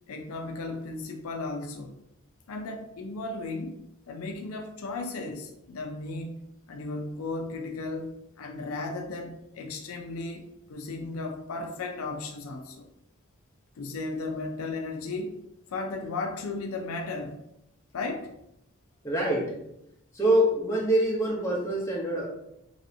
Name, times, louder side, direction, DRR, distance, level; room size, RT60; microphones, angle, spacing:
voice 1, 0.1-2.0 2.5-12.9 13.8-15.3 15.7-17.4 17.9-18.3, left 3 dB, 70° left, 4 dB, 0.4 m, -35 dB
voice 2, 19.0-19.6 20.1-22.3, right 1 dB, 15° left, -4 dB, 0.7 m, -25 dB
3.1 x 2.7 x 2.6 m, 0.79 s
head